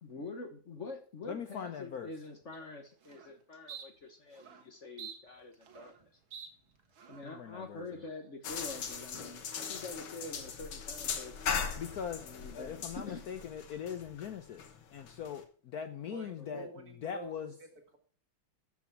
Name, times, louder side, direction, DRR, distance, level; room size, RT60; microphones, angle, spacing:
voice 1, 0.0-6.1 7.1-11.3 12.2-13.3 16.4-16.6, left 3 dB, 40° left, 1.4 m, -46 dB
voice 2, 1.3-2.1 7.2-7.8 11.8-14.6 14.9-16.7 17.0-17.5, left 8 dB, 60° left, 1.1 m, -41 dB
sound 1, 2.5-2.6 3.0-3.3 3.7-3.8 4.3-4.6 5.0-6.0 6.3-6.5 7.0-7.3, right 8 dB, 80° right, 2.2 m, -47 dB
sound 2, 8.4-15.4, left 6 dB, 80° left, 2.1 m, -39 dB
voice 3, 16.1-18.0, right 3 dB, 50° right, 2.1 m, -48 dB
13.0 x 6.2 x 5.9 m
omnidirectional pair, 2.1 m